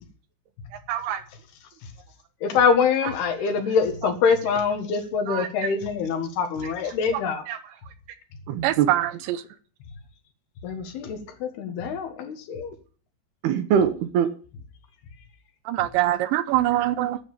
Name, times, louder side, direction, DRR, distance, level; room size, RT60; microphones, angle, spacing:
voice 1, 0.9-1.2 5.3-5.7 7.5-7.6 8.5-8.9 13.4-14.3, right 8 dB, 75° right, 2.8 m, -24 dB
voice 2, 2.4-7.4 10.6-12.8, left 6 dB, 70° left, 3.4 m, -24 dB
voice 3, 8.6-9.4 15.7-17.2, right 14 dB, 90° right, 3.0 m, -23 dB
11.0 x 7.2 x 8.7 m
omnidirectional pair, 5.0 m